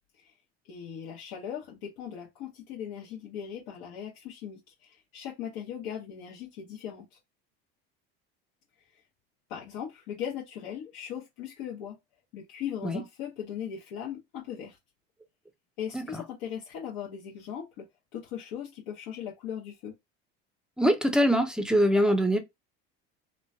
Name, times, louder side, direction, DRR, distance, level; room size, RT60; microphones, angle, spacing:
voice 1, 0.6-7.2 8.9-9.0 9.5-12.0 12.3-14.8 15.8-17.8 18.1-19.9, left 9 dB, 70° left, 0.9 m, -39 dB
voice 2, 20.8-22.4, equal, ahead, 0.4 m, -23 dB
3.0 x 2.2 x 2.6 m
supercardioid pair, 90°, 31 cm